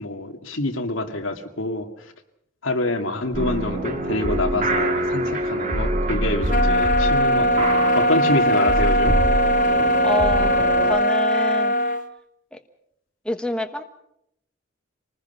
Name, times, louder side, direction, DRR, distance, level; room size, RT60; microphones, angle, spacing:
voice 1, 0.0-1.9 2.6-9.2, left 2 dB, 85° left, 4 dB, 2.3 m, -26 dB
sound 1, 3.3-11.0, right 1 dB, 40° right, 2.4 m, -25 dB
sound 2, 6.5-12.0, equal, 40° left, 1.3 m, -20 dB
voice 2, 10.0-10.6 10.9-11.7 12.5-12.6 13.2-13.8, left 1 dB, 5° left, 6 dB, 1.2 m, -26 dB
27.0 x 20.0 x 5.7 m, 0.75 s
head